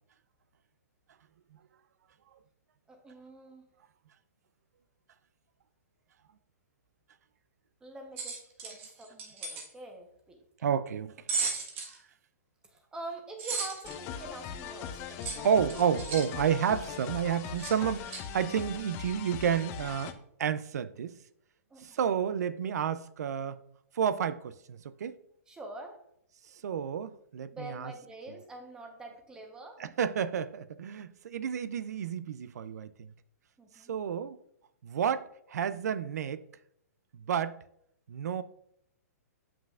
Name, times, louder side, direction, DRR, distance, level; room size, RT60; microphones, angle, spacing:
voice 1, 2.9-3.6 7.8-10.4 12.6-15.5 21.7-22.2 25.5-26.0 27.5-29.8 33.6-33.9, right 2 dB, 10° right, 0.9 m, -45 dB
sound 1, 8.2-9.7 11.3-12.0 13.4-13.9 15.2-16.3 17.6-17.7 18.1-18.2, right 4 dB, 45° right, 1.4 m, -35 dB
voice 2, 10.6-11.1 15.4-20.1 20.4-21.2 21.8-23.6 24.0-25.2 26.6-27.9 29.8-33.1 33.9-34.4 34.8-36.4 37.3-37.6 38.1-38.4, right 8 dB, 75° right, 0.4 m, -30 dB
sound 2, 13.8-20.1, left 8 dB, 25° left, 0.5 m, -41 dB
7.4 x 5.7 x 2.4 m
hypercardioid pair, 150°, 9 cm